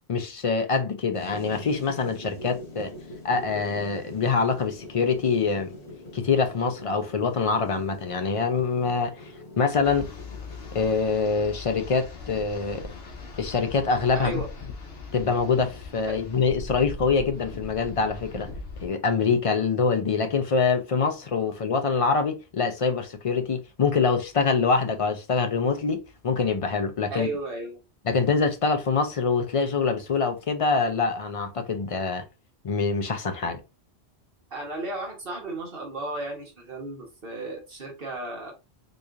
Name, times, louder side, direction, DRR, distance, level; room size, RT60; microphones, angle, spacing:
voice 1, 0.1-2.9 3.2-5.7 6.1-10.1 10.7-12.9 13.4-14.4 15.1-18.5 18.8-27.3 28.1-32.2 32.6-33.6, left 5 dB, 50° left, 0.4 m, -25 dB
sound 1, 1.1-11.1, left 2 dB, 85° left, 1.4 m, -42 dB
sound 2, 9.8-18.9, left 3 dB, 65° left, 1.1 m, -40 dB
voice 2, 14.1-14.5 27.1-27.8 34.5-38.5, right 2 dB, 60° right, 1.2 m, -34 dB
3.9 x 3.0 x 2.4 m
omnidirectional pair, 1.1 m